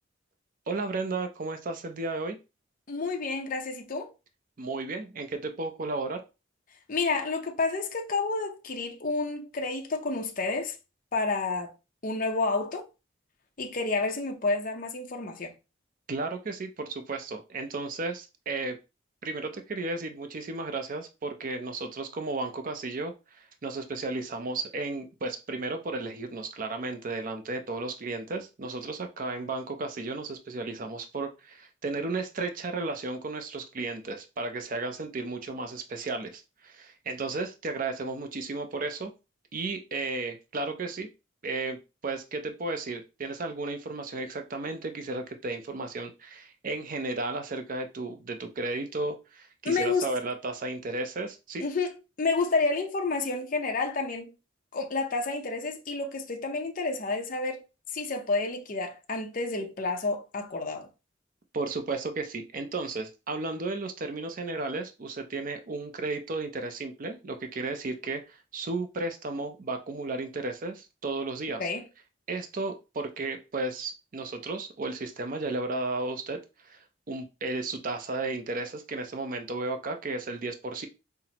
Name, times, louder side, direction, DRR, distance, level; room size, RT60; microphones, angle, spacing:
voice 1, 0.7-2.4 4.6-6.2 16.1-18.8 19.2-39.1 39.5-41.1 41.4-51.6 61.5-71.7 72.3-80.9, right 3 dB, 45° right, 0.5 m, -34 dB
voice 2, 2.9-4.1 6.9-10.8 11.1-11.7 12.0-12.9 13.6-15.5 49.6-50.0 51.6-54.3 54.7-57.6 57.9-60.9 71.6-71.8, left 3 dB, 40° left, 0.6 m, -30 dB
5.7 x 2.0 x 2.8 m
head